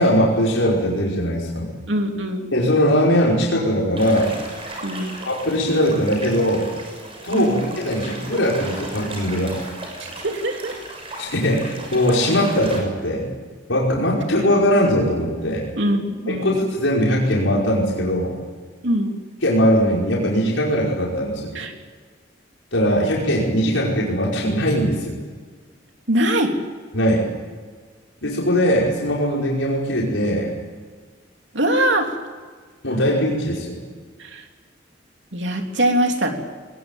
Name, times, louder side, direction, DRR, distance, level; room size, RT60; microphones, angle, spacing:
voice 1, 0.0-1.7 2.5-4.3 5.3-6.7 7.2-9.6 11.2-13.3 13.7-15.7 16.3-18.4 19.4-21.5 22.7-25.2 26.9-27.2 28.2-30.5 32.8-33.8, equal, 90° left, -3 dB, 5.3 m, -20 dB
voice 2, 1.9-2.5 4.8-5.2 7.3-7.6 10.0-10.8 15.8-16.7 18.8-19.2 21.5-21.7 26.1-26.5 31.5-32.1 34.2-34.5 35.3-36.3, right 1 dB, 70° right, 3 dB, 3.3 m, -22 dB
sound 1, 4.0-12.8, right 2 dB, 30° right, 6.6 m, -36 dB
21.0 x 20.0 x 9.1 m, 1.5 s
head